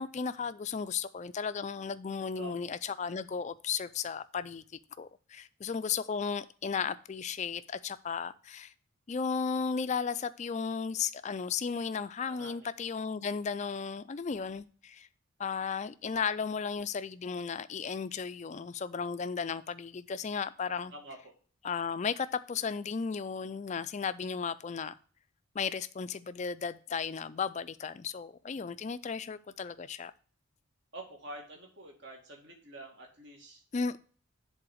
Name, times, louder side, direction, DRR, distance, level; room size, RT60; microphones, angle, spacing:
voice 1, 0.0-4.6 5.0-8.7 9.1-15.1 15.4-20.9 21.6-24.9 25.5-30.1 33.7-34.0, left 6 dB, 30° left, 0.3 m, -35 dB
voice 2, 2.4-2.7 12.2-12.7 20.9-21.3 30.9-33.6, right 1 dB, 55° right, 1.9 m, -47 dB
7.6 x 3.9 x 6.3 m
head